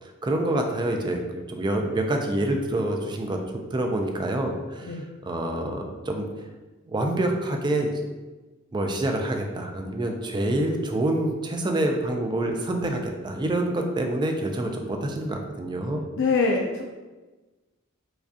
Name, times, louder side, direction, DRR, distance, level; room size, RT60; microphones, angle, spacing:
voice 1, 0.0-3.4 3.7-6.5 6.9-8.1 8.7-16.0, right 1 dB, 20° right, 3 dB, 0.3 m, -27 dB
voice 2, 16.2-16.8, left 4 dB, 60° left, 0 dB, 0.4 m, -24 dB
4.8 x 2.3 x 2.7 m, 1.2 s
head